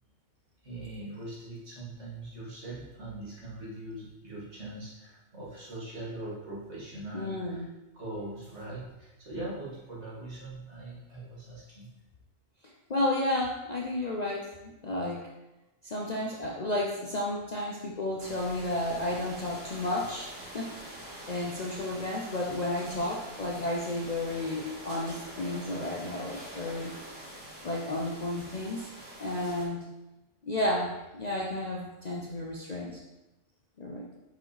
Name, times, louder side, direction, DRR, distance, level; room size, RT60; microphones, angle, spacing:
voice 1, 0.6-7.7 7.9-11.9, right 2 dB, 60° right, -7 dB, 2.3 m, -41 dB
voice 2, 7.1-7.7 12.6-15.2 15.8-20.8 21.3-26.9 27.6-28.9 29.2-29.8 30.4-33.0 33.8-34.1, left 1 dB, 45° left, -2 dB, 0.6 m, -32 dB
sound 1, 18.2-29.7, right 1 dB, 80° right, 2.3 m, -45 dB
6.1 x 4.9 x 3.2 m, 1.0 s
omnidirectional pair, 1.3 m